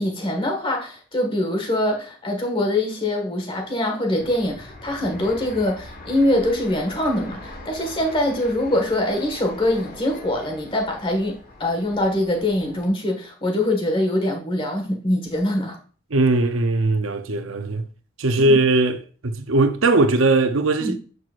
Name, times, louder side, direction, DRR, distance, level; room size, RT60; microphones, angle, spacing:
voice 1, 0.0-15.8 18.4-18.6 20.8-21.0, left 1 dB, 25° left, 1.7 m, -23 dB
Fixed-wing aircraft airplane, 4.2-12.9, left 1 dB, 45° left, 2.0 m, -42 dB
voice 2, 16.1-17.9 18.2-21.0, right 2 dB, 75° right, 0.8 m, -19 dB
7.9 x 6.1 x 2.5 m
head